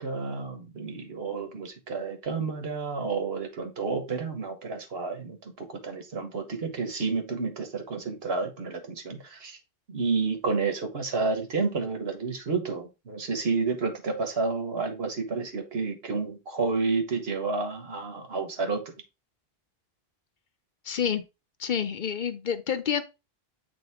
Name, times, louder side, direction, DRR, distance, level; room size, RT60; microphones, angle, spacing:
voice 1, 0.0-9.6 9.9-18.9, right 4 dB, 80° right, 1.4 m, -30 dB
voice 2, 20.8-21.2 21.6-23.0, left 8 dB, 55° left, 0.7 m, -28 dB
7.6 x 3.5 x 3.5 m
omnidirectional pair, 1.0 m